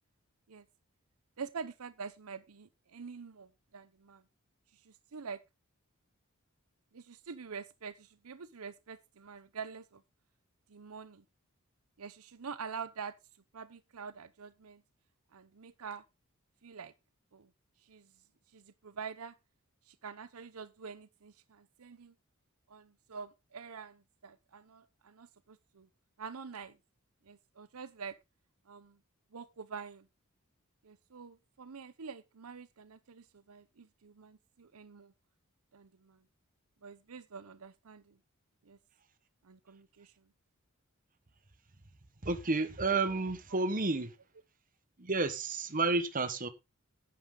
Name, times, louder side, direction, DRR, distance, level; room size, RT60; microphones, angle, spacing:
voice 1, 1.4-4.2 4.7-5.4 6.9-10.0 10.7-11.2 12.0-13.2 13.5-14.8 15.3-16.0 16.6-16.9 17.3-17.5 17.8-18.1 18.5-19.3 19.9-22.1 22.7-25.9 26.2-26.8 27.2-28.2 28.7-29.0 29.3-30.1 30.8-35.1 35.7-36.2 36.8-38.2 38.6-38.8 39.4-40.3, right 5 dB, 85° right, 0.7 m, -46 dB
voice 2, 42.2-44.1 45.0-46.5, right 3 dB, 40° right, 1.3 m, -31 dB
10.5 x 9.2 x 3.8 m
head